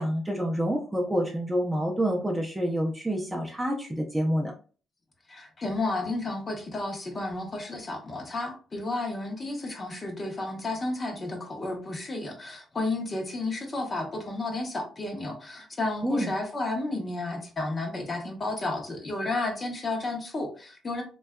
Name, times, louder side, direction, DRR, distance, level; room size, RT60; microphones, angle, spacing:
voice 1, 0.0-4.5 16.0-16.3, equal, 10° right, 0 dB, 0.5 m, -27 dB
voice 2, 5.3-21.0, left 2 dB, 35° left, 3 dB, 0.7 m, -32 dB
2.6 x 2.2 x 2.2 m, 0.39 s
cardioid pair, 90°, 0 cm